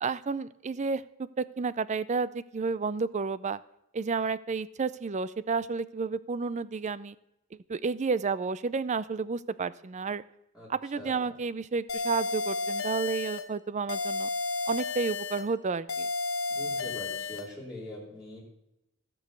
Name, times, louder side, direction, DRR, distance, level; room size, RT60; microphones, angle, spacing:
voice 1, 0.0-1.0 1.4-3.6 3.9-7.1 7.7-10.2 10.7-14.3 14.7-16.1, right 4 dB, 35° right, 17 dB, 0.4 m, -31 dB
voice 2, 11.0-11.3 16.5-18.4, left 1 dB, 5° right, -7 dB, 3.3 m, -43 dB
sound 1, 11.9-13.5 13.9-15.5 15.9-17.5, left 3 dB, 70° left, 1.1 m, -32 dB
15.5 x 6.3 x 6.8 m, 0.87 s
head